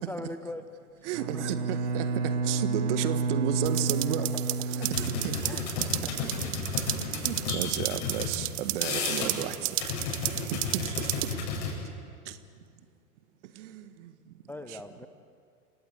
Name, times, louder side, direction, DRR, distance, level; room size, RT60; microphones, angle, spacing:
voice 1, 0.1-0.6 1.3-1.4 4.2-4.4 5.4-5.9 14.5-15.1, left 1 dB, 5° left, 9 dB, 0.7 m, -40 dB
voice 2, 1.0-4.3 4.6-6.3 6.7-9.9 10.3-11.3 12.2-12.4 13.4-14.3 14.6-14.8, right 11 dB, 50° right, 11 dB, 1.6 m, -34 dB
Bowed string instrument, 1.1-5.9, right 3 dB, 70° right, 1.7 m, -30 dB
sound 1, 3.7-11.3, right 22 dB, 35° right, 0.7 m, -33 dB
sound 2, 4.8-8.3 8.7-9.5 9.8-11.7, left 4 dB, 45° left, 7.7 m, -33 dB
29.5 x 17.5 x 8.2 m, 2.3 s
figure-of-eight pair, 95°, 45 cm